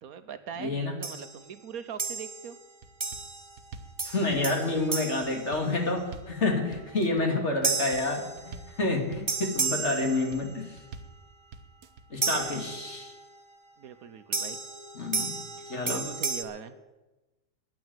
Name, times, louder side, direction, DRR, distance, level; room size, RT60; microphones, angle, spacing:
voice 1, 0.0-2.6 13.8-14.6 15.6-16.8, right 8 dB, 70° right, 10 dB, 1.2 m, -42 dB
voice 2, 0.6-0.9 4.0-10.8 12.1-13.1 14.9-15.4 15.7-16.0, left 2 dB, 45° left, 3 dB, 2.3 m, -29 dB
sound 1, 1.0-1.4 2.0-2.6 3.0-3.6 4.0-6.1 7.6-8.8 9.3-10.7 12.2-13.2 14.3-16.4, right 4 dB, 25° right, 0.7 m, -33 dB
sound 2, 2.8-3.3 3.6-4.0 4.3-4.8 5.2-5.7 6.0-6.4 6.7-7.2 7.6-8.1 8.4-8.8 9.1-9.6 10.0-10.5 10.8-11.2 11.5-12.0 12.4-12.5, right 5 dB, 90° right, 1.5 m, -46 dB
10.5 x 9.2 x 9.0 m, 1.1 s
omnidirectional pair, 1.7 m